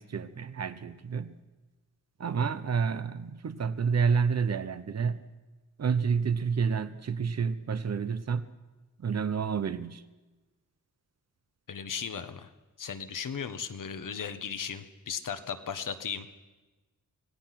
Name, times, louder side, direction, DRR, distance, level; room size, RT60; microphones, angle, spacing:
voice 1, 0.0-1.4 2.2-5.2 5.8-8.4 9.0-10.0, right 6 dB, 55° right, 12 dB, 1.1 m, -29 dB
voice 2, 11.7-12.5 12.8-16.3, left 7 dB, 90° left, 9 dB, 1.5 m, -36 dB
26.0 x 18.5 x 6.0 m, 1.2 s
wide cardioid pair, 175°, 31 cm